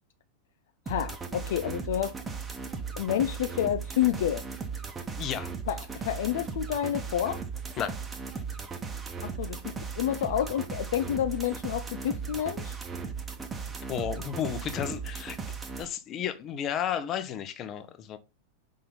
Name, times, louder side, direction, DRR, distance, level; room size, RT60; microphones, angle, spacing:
voice 1, 0.9-2.1 3.0-4.4 5.7-7.4 9.2-12.8, left 11 dB, 55° left, 0.5 m, -29 dB
sound 1, 0.9-15.9, right 5 dB, 15° right, 1.1 m, -37 dB
voice 2, 5.2-5.5 7.8-8.0 13.9-15.4 15.8-18.2, left 9 dB, 30° left, 0.9 m, -32 dB
5.6 x 3.9 x 5.4 m
figure-of-eight pair, 90°, 0 cm